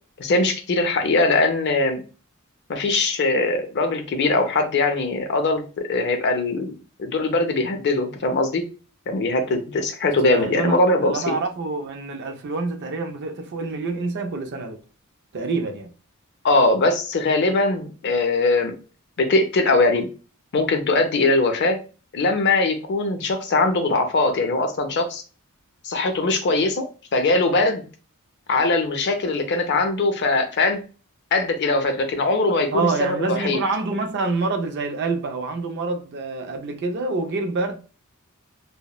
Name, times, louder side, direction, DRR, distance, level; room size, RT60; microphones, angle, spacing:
voice 1, 0.2-2.0 2.7-6.7 7.0-8.6 9.1-11.3 16.4-18.7 19.2-20.1 20.5-21.8 22.1-25.2 25.8-26.9 27.1-27.8 28.5-30.8 31.3-33.6, left 2 dB, 50° left, 0.5 m, -21 dB
voice 2, 10.2-14.8 15.3-15.9 32.7-37.8, right 3 dB, 50° right, 0.4 m, -27 dB
2.8 x 2.0 x 2.3 m
head